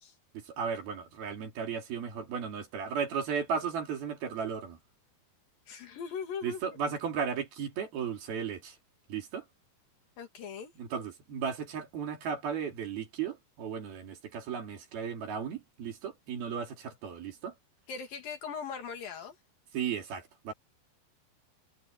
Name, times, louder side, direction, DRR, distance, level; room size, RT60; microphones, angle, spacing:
voice 1, 0.3-4.8 6.4-8.8 9.1-9.5 10.8-17.5 19.7-20.5, right 7 dB, 65° right, 5.0 m, -35 dB
voice 2, 5.7-6.8 10.2-10.7 17.9-19.4, left 6 dB, 60° left, 3.6 m, -40 dB
omnidirectional pair, 4.9 m